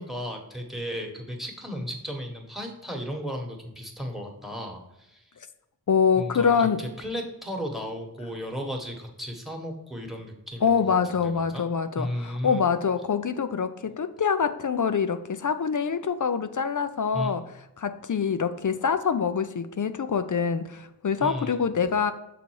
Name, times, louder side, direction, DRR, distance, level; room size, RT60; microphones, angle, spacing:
voice 1, 0.0-5.3 6.2-11.0 11.2-11.6 12.0-12.6 17.1-17.4 21.2-21.6, equal, ahead, 2 dB, 1.3 m, -35 dB
voice 2, 5.9-6.8 10.6-17.4 17.8-22.1, left 6 dB, 50° left, 10 dB, 0.5 m, -25 dB
6.8 x 4.0 x 4.6 m, 0.88 s
wide cardioid pair, 55°, 40 cm